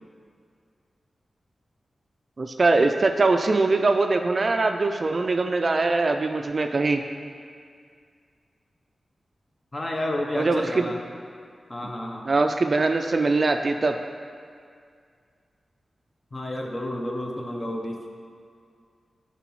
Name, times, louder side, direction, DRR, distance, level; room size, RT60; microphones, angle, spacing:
voice 1, 2.4-7.0 10.4-10.8 12.3-14.0, right 3 dB, 45° right, 5 dB, 0.3 m, -22 dB
voice 2, 9.7-11.0 11.7-12.3 16.3-18.2, left 1 dB, 30° left, 1 dB, 0.8 m, -30 dB
10.5 x 4.1 x 3.1 m, 2.2 s
wide cardioid pair, 115°, 0 cm